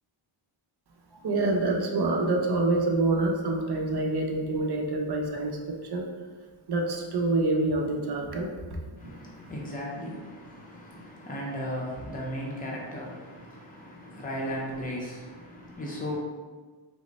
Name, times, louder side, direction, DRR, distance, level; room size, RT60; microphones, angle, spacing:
voice 1, 1.2-6.1 6.7-8.5, right 2 dB, 55° right, 1 dB, 0.5 m, -26 dB
voice 2, 9.0-16.2, equal, 15° left, -3 dB, 0.6 m, -36 dB
3.5 x 2.1 x 3.9 m, 1.4 s
wide cardioid pair, 170°, 49 cm